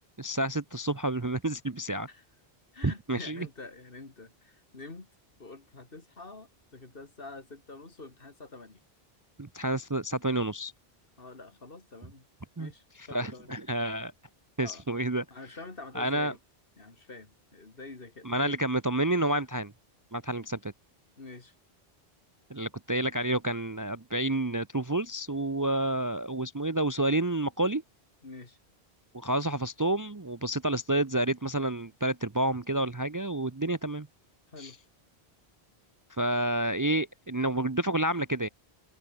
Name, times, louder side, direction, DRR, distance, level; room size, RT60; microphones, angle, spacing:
voice 1, 0.2-2.1 2.8-3.5 9.4-10.7 12.6-12.7 13.1-14.1 14.6-15.2 15.9-16.3 18.2-19.7 20.1-20.7 22.5-27.8 29.1-34.1 34.6-34.7 36.2-38.5, right 1 dB, 20° right, 0.6 m, -29 dB
voice 2, 2.7-5.1 5.4-8.8 11.2-12.3 12.6-13.6 14.6-14.8 15.3-16.4 16.8-18.6 21.2-21.5 28.2-28.6 34.5-34.8, left 3 dB, 60° left, 2.8 m, -46 dB
open air
omnidirectional pair, 1.1 m